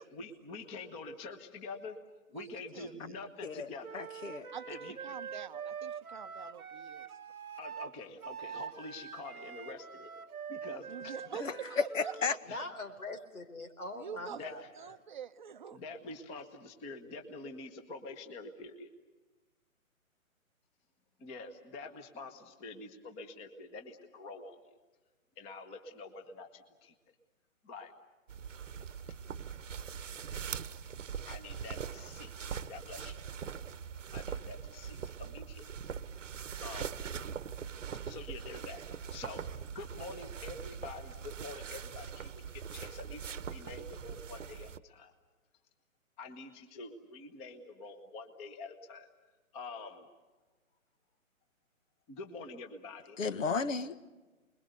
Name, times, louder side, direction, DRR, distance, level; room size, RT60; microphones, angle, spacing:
voice 1, 0.0-2.0 2.3-4.0 4.7-5.0 7.6-10.1 10.5-11.6 12.5-12.7 14.3-14.7 15.7-18.9 21.2-24.6 25.4-26.9 27.6-27.9 31.3-33.2 34.1-35.9 36.6-37.0 38.0-38.8 39.1-45.1 46.2-49.1 49.5-50.1 52.1-53.2, left 3 dB, 15° left, 7 dB, 1.3 m, -46 dB
voice 2, 2.3-2.9 4.5-7.1 10.9-11.7 12.0-12.1 13.9-14.4 14.7-15.8, right 8 dB, 35° right, 9 dB, 0.8 m, -45 dB
Wind instrument woodwind instrument, 3.8-12.4, right 7 dB, 85° right, 1.0 m, -44 dB
voice 3, 3.9-4.5 11.4-12.4 53.2-54.0, left 4 dB, 65° left, 13 dB, 1.8 m, -33 dB
voice 4, 12.5-15.0, left 2 dB, 90° left, 8 dB, 4.4 m, -43 dB
sound 1, 28.3-44.8, right 7 dB, 60° right, 1.1 m, -42 dB
29.5 x 22.0 x 6.8 m, 1.2 s
hypercardioid pair, 150°, 42 cm